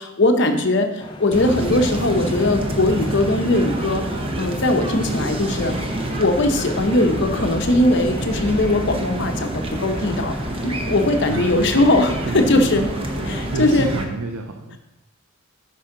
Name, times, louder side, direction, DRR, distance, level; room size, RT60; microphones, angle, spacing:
voice 1, 0.0-4.1 4.4-5.7 6.2-10.4 10.6-12.8 13.3-13.9, left 1 dB, 55° left, 5 dB, 0.7 m, -20 dB
sound 1, 1.0-14.1, left 1 dB, 20° left, 0.6 m, -38 dB
sound 2, 1.3-14.0, right 1 dB, 25° right, 0.7 m, -27 dB
voice 2, 11.3-11.6 12.2-12.9 13.2-14.8, right 3 dB, 70° right, 6 dB, 0.5 m, -30 dB
8.9 x 5.5 x 3.8 m, 0.97 s
head